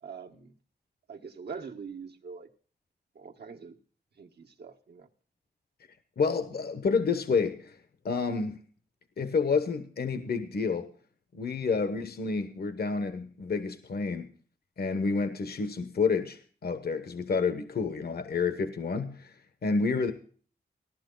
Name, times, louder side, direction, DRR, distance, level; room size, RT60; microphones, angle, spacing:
voice 1, 0.0-0.5 1.1-2.5 3.1-3.8 4.2-5.1, right 5 dB, 75° right, 1.4 m, -43 dB
voice 2, 6.2-7.8 8.0-8.6 9.2-10.9 11.3-14.3 14.8-19.3 19.6-20.1, left 4 dB, 65° left, 1.1 m, -29 dB
16.0 x 11.5 x 3.8 m
wide cardioid pair, 120°, 17 cm